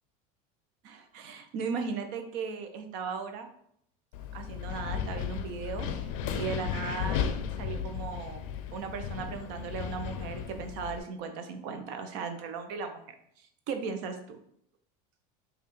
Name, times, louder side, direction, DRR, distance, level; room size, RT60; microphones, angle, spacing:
voice 1, 0.8-3.5 4.3-5.9 6.3-7.3 7.6-8.5 8.7-13.1 13.7-14.4, right 5 dB, 60° right, 7 dB, 0.6 m, -37 dB
Wind, 4.1-11.0, left 8 dB, 75° left, 0.4 m, -35 dB
5.3 x 2.4 x 3.1 m, 0.69 s
cardioid pair, 160°, 18 cm